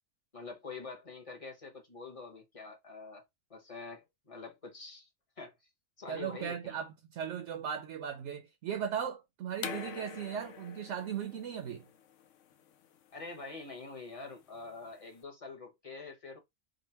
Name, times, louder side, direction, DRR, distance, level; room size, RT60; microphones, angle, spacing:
voice 1, 0.3-3.2 3.5-5.1 5.4-5.5 6.0-6.8 13.1-16.4, left 3 dB, 30° left, 1.1 m, -45 dB
voice 2, 6.1-11.9, right 8 dB, 75° right, 0.9 m, -37 dB
sound 1, 9.6-15.2, left 8 dB, 85° left, 1.0 m, -46 dB
3.8 x 2.1 x 4.3 m
omnidirectional pair, 1.2 m